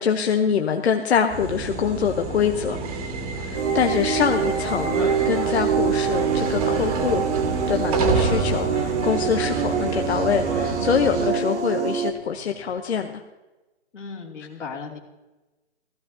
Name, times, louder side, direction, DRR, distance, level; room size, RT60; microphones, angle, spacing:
voice 1, 0.0-2.8 3.4-7.2 7.7-13.2, left 7 dB, 65° left, 5 dB, 0.9 m, -24 dB
sound 1, 1.3-11.3, right 3 dB, 30° right, 1.8 m, -29 dB
sound 2, 2.6-12.7, right 4 dB, 10° right, 1.4 m, -43 dB
sound 3, 3.5-12.1, right 7 dB, 70° right, 1.2 m, -25 dB
voice 2, 13.9-15.0, left 5 dB, 90° left, -1 dB, 2.8 m, -36 dB
15.5 x 14.5 x 2.8 m, 1.1 s
hypercardioid pair, 160°, 35 cm